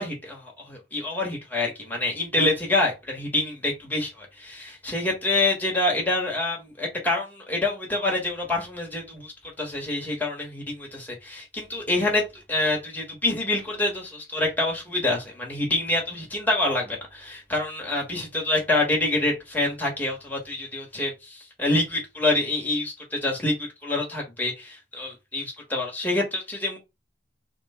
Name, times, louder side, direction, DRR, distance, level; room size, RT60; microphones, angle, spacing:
voice 1, 0.0-12.2 12.5-26.8, left 2 dB, 10° left, 1.3 m, -26 dB
3.0 x 2.2 x 4.2 m
head